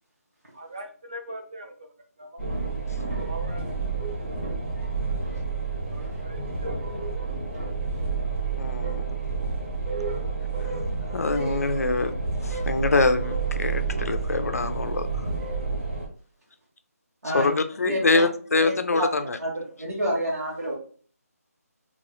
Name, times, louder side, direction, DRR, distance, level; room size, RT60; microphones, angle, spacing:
voice 1, 0.5-1.7 2.2-2.4 3.0-3.7 5.9-6.9, right 1 dB, 25° right, 4 dB, 0.4 m, -41 dB
sound 1, 2.4-16.1, right 4 dB, 45° right, 1.1 m, -29 dB
voice 2, 8.6-9.0 11.1-12.1 12.4-15.1 17.3-19.4, left 3 dB, 65° left, 8 dB, 0.4 m, -24 dB
voice 3, 17.8-18.2 18.6-19.1 19.4-20.7, equal, 70° right, -6 dB, 1.1 m, -29 dB
3.1 x 2.4 x 2.2 m, 0.43 s
figure-of-eight pair, 170°, 9 cm